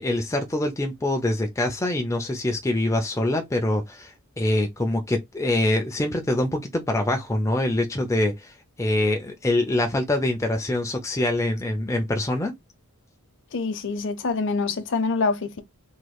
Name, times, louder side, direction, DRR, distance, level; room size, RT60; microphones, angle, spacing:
voice 1, 0.0-12.5, left 1 dB, 15° left, 0.4 m, -24 dB
voice 2, 13.5-15.6, left 4 dB, 55° left, 0.6 m, -25 dB
3.2 x 3.0 x 2.3 m
head